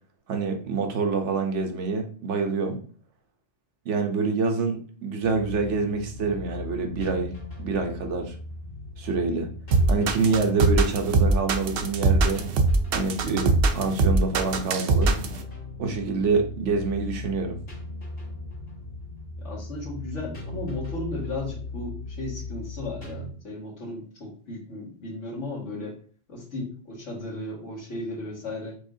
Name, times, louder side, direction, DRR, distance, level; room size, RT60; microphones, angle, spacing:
voice 1, 0.3-2.8 3.8-7.3 7.6-8.3 9.0-9.5 9.9-12.5 12.9-15.2 15.8-17.6, right 4 dB, 80° right, 1.1 m, -26 dB
sound 1, 5.2-23.3, left 2 dB, 55° left, 2.4 m, -38 dB
sound 2, 9.7-15.4, right 3 dB, 65° right, 0.7 m, -21 dB
voice 2, 19.4-26.0 26.3-28.7, left 2 dB, 85° left, 2.2 m, -35 dB
5.2 x 3.5 x 2.7 m
omnidirectional pair, 1.2 m